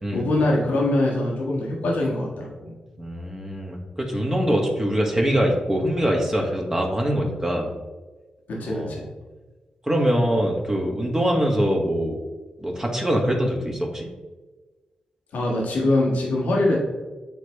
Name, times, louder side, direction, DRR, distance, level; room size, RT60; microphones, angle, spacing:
voice 1, 0.1-2.7 8.5-9.0 15.3-16.8, left 1 dB, 90° left, -3 dB, 1.4 m, -23 dB
voice 2, 3.0-7.7 8.6-9.1 9.9-12.2 12.6-14.1, equal, 20° right, 0 dB, 1.5 m, -23 dB
9.0 x 3.3 x 3.2 m, 1.2 s
cardioid pair, 55°, 3 cm